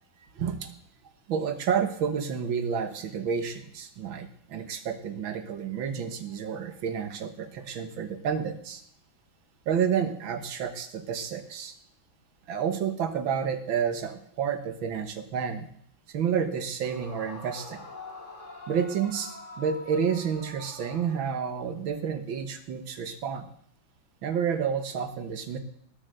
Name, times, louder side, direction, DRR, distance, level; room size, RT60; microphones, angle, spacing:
voice 1, 0.3-0.7 1.3-8.8 9.7-11.7 12.5-15.7 16.1-17.8 18.7-23.4 24.2-25.6, right 7 dB, 85° right, 9 dB, 2.1 m, -30 dB
Yell / Screaming, 16.8-21.7, left 2 dB, 35° left, 3.2 m, -45 dB
19.5 x 7.7 x 6.8 m, 0.69 s
omnidirectional pair, 2.1 m